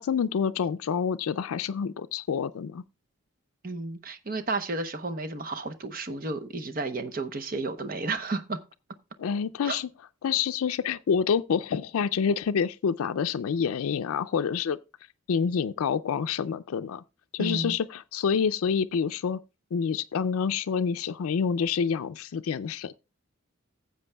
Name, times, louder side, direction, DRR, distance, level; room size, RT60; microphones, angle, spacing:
voice 1, 0.0-2.8 9.2-9.9 10.2-14.8 15.3-17.0 17.3-19.4 19.7-22.9, left 6 dB, 90° left, 0.4 m, -27 dB
voice 2, 3.6-8.6 9.6-9.8 17.4-17.8, right 3 dB, 40° right, 0.7 m, -32 dB
15.0 x 7.7 x 2.2 m
head